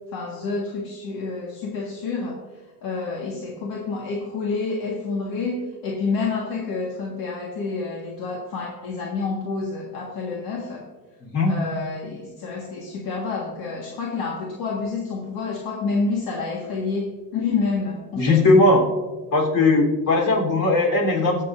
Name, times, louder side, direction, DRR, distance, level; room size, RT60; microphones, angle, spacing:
voice 1, 0.1-2.4 2.8-10.8 11.5-18.4, left 4 dB, 75° left, -2 dB, 1.8 m, -28 dB
voice 2, 11.2-11.5 18.2-18.8 19.3-21.4, left 2 dB, 55° left, 0 dB, 3.6 m, -18 dB
21.5 x 7.5 x 2.6 m, 1.3 s
cardioid pair, 140°, 36 cm